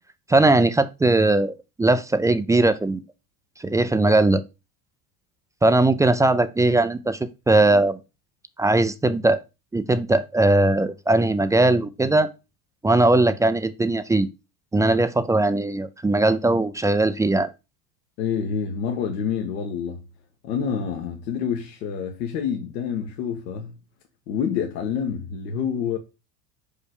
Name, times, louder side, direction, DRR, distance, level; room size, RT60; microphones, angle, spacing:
voice 1, 0.3-1.5 1.8-3.0 3.6-4.4 5.6-7.2 7.5-8.0 8.6-9.4 9.7-12.3 12.8-14.3 14.7-17.5, right 2 dB, 10° right, 0.3 m, -19 dB
voice 2, 18.2-20.0 20.4-23.8 24.3-26.0, left 7 dB, 85° left, 1.6 m, -27 dB
5.4 x 5.2 x 6.4 m
supercardioid pair, 100°, 49 cm